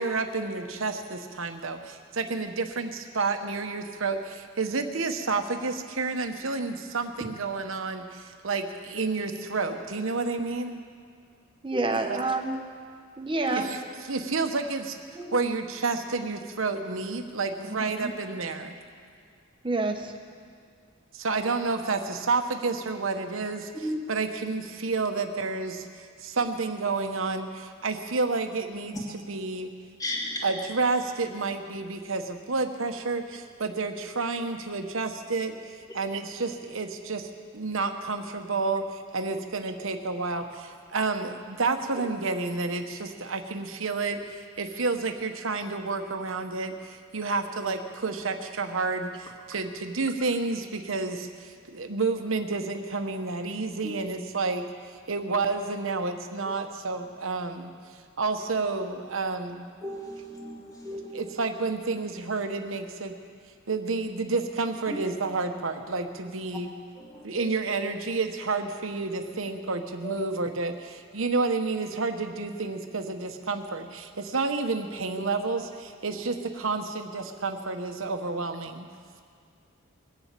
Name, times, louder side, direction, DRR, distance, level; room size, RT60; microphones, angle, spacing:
voice 1, 0.0-10.8 12.1-12.2 13.5-15.0 15.3-18.7 21.1-29.7 30.4-54.6 55.1-57.7 58.2-59.6 61.1-63.1 63.7-66.7 67.2-78.9, right 3 dB, 70° right, 6 dB, 1.1 m, -30 dB
voice 2, 11.6-12.6 13.2-13.7 17.7-18.1 19.6-20.1, right 2 dB, 25° right, 4 dB, 1.1 m, -28 dB
voice 3, 30.0-30.4 53.8-54.0 59.8-61.1 64.9-65.0 67.1-67.4 70.0-70.1 76.1-76.2, equal, 15° left, -4 dB, 2.4 m, -35 dB
22.0 x 7.3 x 8.4 m, 2.3 s
head